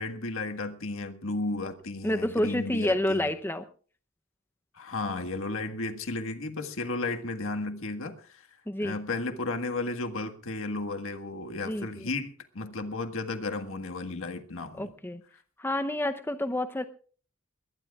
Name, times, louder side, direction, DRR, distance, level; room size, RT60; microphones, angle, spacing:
voice 1, 0.0-3.3 4.7-8.5 8.8-14.9, left 3 dB, 60° left, 6 dB, 1.6 m, -34 dB
voice 2, 2.0-3.7 8.7-8.9 11.7-11.9 14.8-15.2 15.6-16.8, left 1 dB, 10° left, 8 dB, 0.7 m, -28 dB
22.0 x 18.5 x 2.4 m, 0.40 s
head